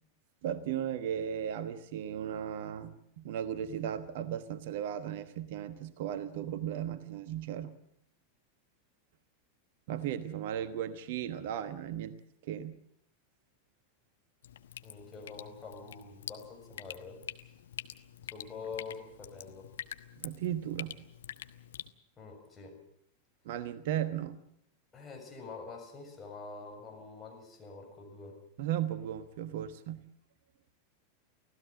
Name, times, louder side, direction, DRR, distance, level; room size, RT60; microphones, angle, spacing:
voice 1, 0.4-7.7 9.9-12.2 12.4-12.8 20.2-21.0 23.4-24.4 28.6-30.1, right 10 dB, 55° right, 13 dB, 1.2 m, -36 dB
Drip, 14.4-21.9, left 10 dB, 65° left, 1.1 m, -46 dB
voice 2, 14.8-17.2 18.3-19.7 22.2-22.8 24.9-28.4, left 4 dB, 20° left, 2 dB, 6.9 m, -46 dB
25.0 x 16.5 x 7.6 m, 0.73 s
figure-of-eight pair, 90°, 0 cm